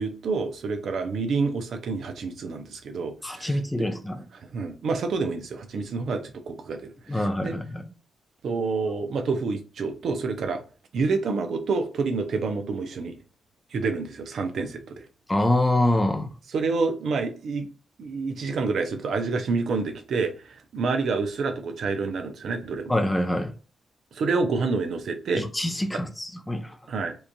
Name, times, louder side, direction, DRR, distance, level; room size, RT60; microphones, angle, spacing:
voice 1, 0.0-3.9 4.3-7.6 8.4-10.6 10.9-13.2 13.7-15.0 16.5-17.7 18.0-22.9 24.1-25.5 26.9-27.2, right 4 dB, 70° right, 0.5 m, -28 dB
voice 2, 3.2-4.2 7.1-7.9 15.3-16.3 22.9-23.5 25.4-26.8, left 1 dB, 15° left, 0.5 m, -25 dB
2.9 x 2.5 x 2.2 m
supercardioid pair, 60°, 0 cm